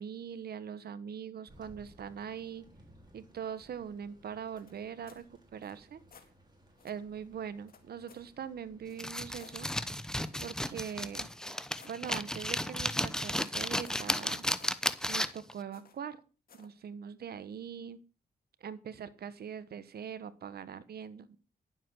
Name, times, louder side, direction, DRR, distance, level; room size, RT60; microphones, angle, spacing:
voice 1, 0.0-2.7 3.1-5.2 5.5-6.0 6.8-9.7 10.4-11.3 11.8-14.5 15.1-16.2 16.5-18.0 18.6-21.4, right 8 dB, 75° right, 14 dB, 1.2 m, -42 dB
Thunder, 1.5-10.0, right 1 dB, 25° right, 4.6 m, -61 dB
sound 1, 4.6-5.3 5.6-6.3 6.8-7.0 7.7-8.3 8.9-9.6 10.2-13.5 13.8-14.8 15.7-16.1 16.5-16.8, left 6 dB, 65° left, 2.0 m, -59 dB
sound 2, 9.0-15.5, equal, 5° left, 0.9 m, -33 dB
11.0 x 7.9 x 6.3 m, 0.35 s
cardioid pair, 75°, 16 cm